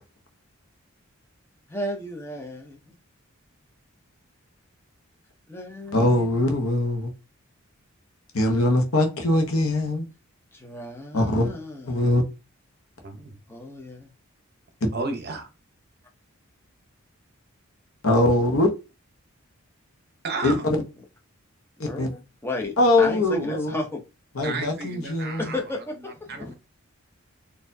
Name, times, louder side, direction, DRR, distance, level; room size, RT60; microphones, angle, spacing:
voice 1, 1.7-2.9 5.5-6.3 10.5-12.1 13.5-14.1 21.9-24.0 25.4-26.5, left 1 dB, 10° left, 0.6 m, -34 dB
voice 2, 5.9-7.1 8.3-10.1 11.1-11.5 11.9-12.2 18.0-18.7 20.4-20.5 21.8-22.1 22.8-23.8 24.3-25.5, left 1 dB, 75° left, 0.9 m, -22 dB
voice 3, 13.0-13.4 14.9-15.5 20.2-20.7 24.4-25.6 26.0-26.5, right 3 dB, 45° right, 0.7 m, -33 dB
4.2 x 2.6 x 2.6 m
head